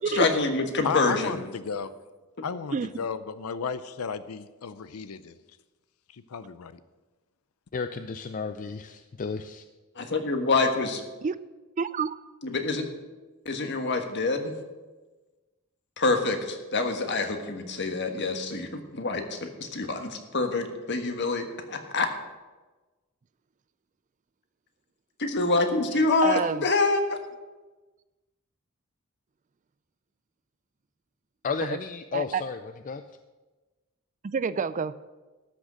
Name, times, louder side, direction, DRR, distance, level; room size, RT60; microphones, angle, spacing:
voice 1, 0.1-1.3 9.9-11.0 12.4-12.9 13.4-14.5 16.0-22.1 25.2-27.2, left 3 dB, 55° left, 1.5 m, -26 dB
voice 2, 0.8-1.9 2.4-5.4 6.1-6.8, left 5 dB, 85° left, 0.6 m, -34 dB
voice 3, 2.7-3.0 11.2-11.4 11.8-12.2 26.2-26.6 31.6-31.8 32.1-32.4 34.2-34.9, right 5 dB, 35° right, 0.4 m, -28 dB
voice 4, 7.7-9.6 31.4-32.6 32.9-33.0, left 5 dB, 40° left, 0.4 m, -32 dB
13.0 x 6.4 x 7.4 m
head